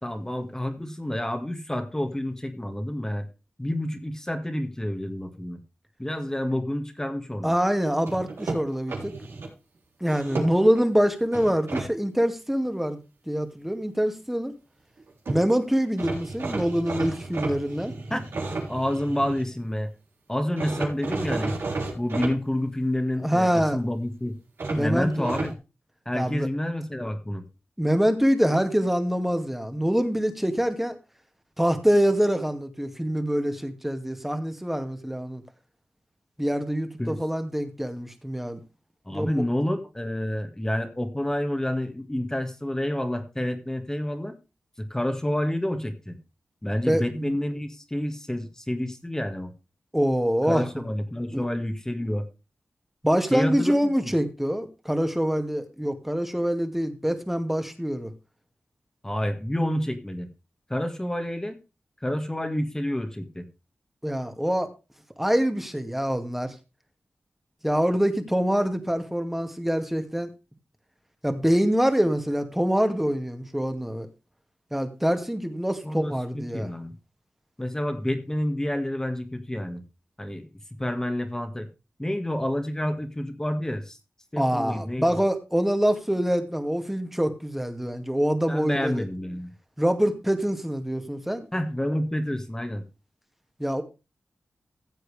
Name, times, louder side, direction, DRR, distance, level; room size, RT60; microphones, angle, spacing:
voice 1, 0.0-3.3 3.6-5.6 6.0-7.6 18.1-18.2 18.7-19.9 20.3-21.6 21.9-24.3 24.7-25.5 26.0-27.4 37.0-37.1 39.0-44.3 44.8-46.1 46.6-49.5 50.4-52.3 53.3-54.1 59.0-60.3 60.7-61.6 62.0-63.4 75.8-76.9 77.6-79.8 80.2-80.4 80.8-81.7 82.0-84.0 84.3-85.2 88.5-89.5 91.5-92.8, left 1 dB, 15° left, 7 dB, 1.8 m, -29 dB
voice 2, 7.4-9.1 10.0-13.0 13.3-14.5 15.3-17.9 23.2-23.8 24.7-25.3 26.1-26.5 27.8-31.0 31.6-35.4 36.4-38.6 39.1-39.4 46.9-47.3 49.9-50.7 51.3-51.4 53.0-58.1 64.0-64.7 65.2-66.5 67.6-70.3 71.2-74.1 74.7-76.7 84.4-89.0 89.8-91.5 93.6-93.8, equal, 5° right, 7 dB, 2.0 m, -25 dB
sound 1, 8.1-9.5 10.0-10.8 11.3-11.9 15.0-15.1 15.3-15.4 16.0-19.5 20.6-22.3 24.6-25.5, right 3 dB, 75° right, 3.5 m, -32 dB
15.5 x 7.7 x 3.5 m, 0.29 s
cardioid pair, 55°, 4 cm